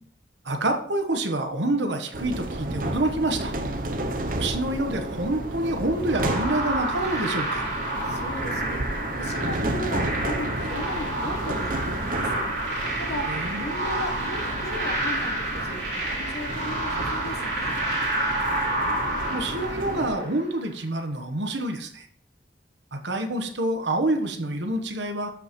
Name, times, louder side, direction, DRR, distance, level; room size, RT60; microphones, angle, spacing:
voice 1, 0.4-3.5 4.4-7.7 13.3-13.6 19.3-22.1 22.9-25.3, right 1 dB, 85° right, 5 dB, 1.2 m, -27 dB
sound 1, 2.1-20.1, right 1 dB, 50° right, 0.7 m, -32 dB
sound 2, 6.1-20.4, right 2 dB, 70° right, 3.9 m, -29 dB
voice 2, 8.1-12.5 13.0-17.8, left 1 dB, 65° left, 4 dB, 1.2 m, -36 dB
12.5 x 5.5 x 3.1 m, 0.64 s
head